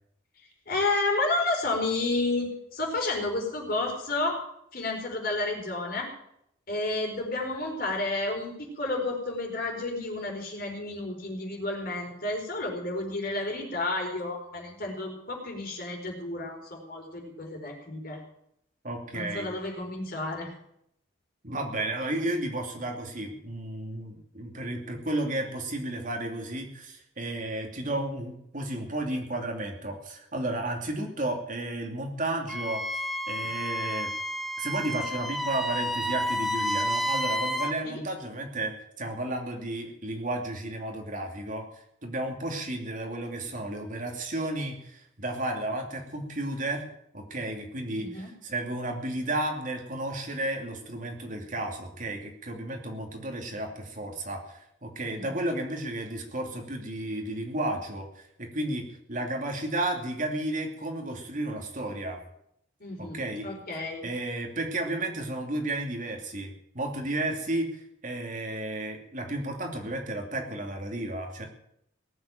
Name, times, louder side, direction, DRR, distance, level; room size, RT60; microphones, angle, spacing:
voice 1, 0.7-4.4 4.7-6.1 6.7-18.2 19.1-20.5 37.8-38.0 48.0-48.3 55.2-55.3 62.8-64.1, left 2 dB, 50° left, 1 dB, 4.6 m, -31 dB
voice 2, 18.8-19.5 21.4-32.8 33.3-34.1 34.6-41.7 42.0-46.9 47.1-62.2 63.0-63.5 64.0-71.5, right 1 dB, 45° right, 2 dB, 2.7 m, -33 dB
Wind instrument woodwind instrument, 32.5-37.8, equal, ahead, 0.9 m, -30 dB
18.5 x 7.9 x 9.0 m, 0.75 s
head